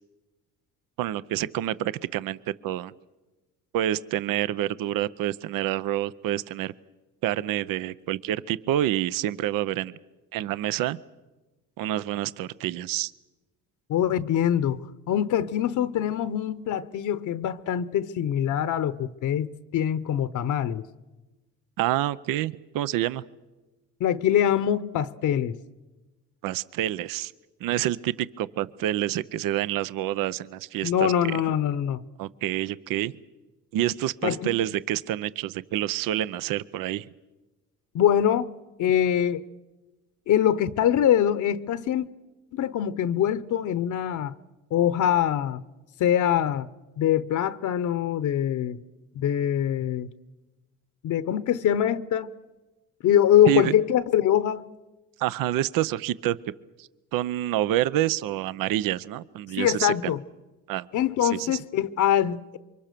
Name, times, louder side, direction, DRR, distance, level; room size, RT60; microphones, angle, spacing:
voice 1, 1.0-2.4 2.6-2.9 3.7-6.7 7.2-9.9 10.3-11.0 11.8-13.1 21.8-23.2 26.4-27.3 27.6-31.4 32.2-33.1 33.7-37.1 53.5-53.7 55.2-56.4 56.8-59.9 60.7-60.9 61.2-61.6, right 13 dB, 75° right, 0.8 m, -27 dB
voice 2, 13.9-14.8 15.1-20.9 24.0-25.6 30.8-32.0 34.2-34.5 37.9-38.5 38.8-39.4 40.3-42.1 42.5-44.3 44.7-45.6 46.0-46.7 47.0-48.8 49.2-50.1 51.0-52.3 53.0-54.6 59.6-60.2 60.9-62.6, left 10 dB, 60° left, 0.9 m, -23 dB
28.0 x 24.0 x 6.8 m
cardioid pair, 105°, 33 cm